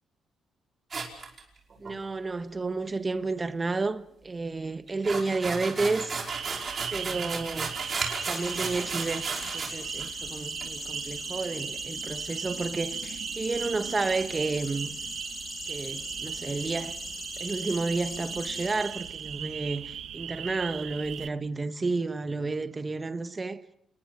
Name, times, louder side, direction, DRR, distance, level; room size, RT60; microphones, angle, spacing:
sound 1, 0.9-1.9 4.9-9.7 10.0-10.1 10.6-10.7, right 4 dB, 40° right, 5.3 m, -34 dB
voice 1, 1.8-6.2 6.9-7.8 8.2-9.3 9.5-15.0 15.6-17.0 17.4-23.6, right 3 dB, 25° right, 1.3 m, -31 dB
sound 2, 6.3-21.3, right 9 dB, 70° right, 1.1 m, -38 dB
sound 3, 7.6-19.4, left 2 dB, 25° left, 4.5 m, -41 dB
29.0 x 20.0 x 6.2 m
cardioid pair, 90°, 0 cm